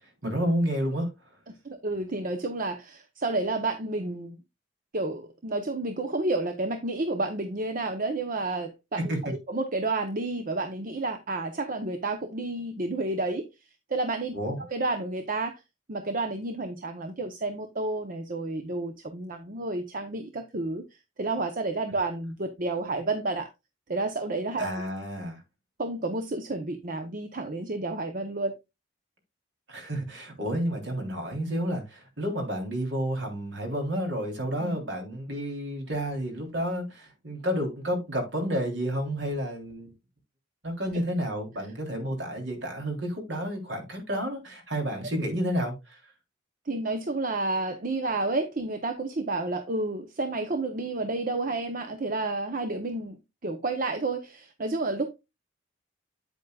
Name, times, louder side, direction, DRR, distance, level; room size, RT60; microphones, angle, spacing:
voice 1, 0.2-1.1 9.0-9.3 14.3-14.6 24.6-25.4 29.7-39.9 40.6-46.0, equal, 70° right, 3.5 m, -30 dB
voice 2, 1.6-4.4 4.9-13.5 13.9-15.6 15.9-20.8 21.2-23.5 23.9-24.7 25.8-28.6 34.6-34.8 40.9-41.0 46.7-53.2 53.4-55.1, right 2 dB, 45° right, 0.9 m, -30 dB
8.9 x 8.2 x 2.4 m
head